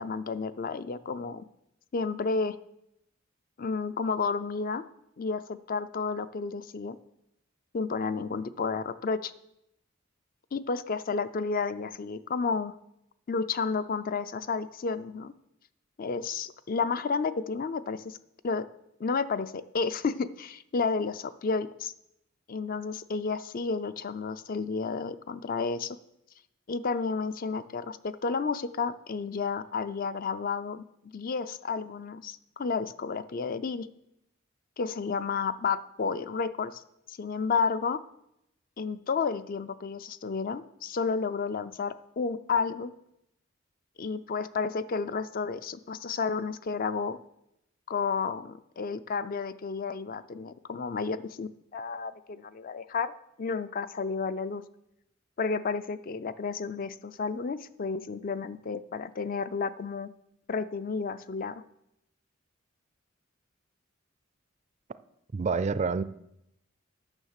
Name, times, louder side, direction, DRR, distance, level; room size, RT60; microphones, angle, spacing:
voice 1, 0.0-1.4 1.9-2.6 3.6-4.8 5.2-7.0 7.7-9.3 10.5-12.8 13.3-15.3 16.0-18.2 18.4-18.7 19.0-21.9 22.5-26.0 26.7-30.8 31.1-33.9 34.8-36.8 37.1-38.0 38.8-42.9 44.0-47.2 47.9-53.1 53.4-54.6 55.4-60.1 60.5-61.6, left 5 dB, 45° left, 13 dB, 0.4 m, -31 dB
voice 2, 65.3-66.0, right 5 dB, 35° right, 15 dB, 0.3 m, -27 dB
9.8 x 6.4 x 6.5 m, 0.83 s
head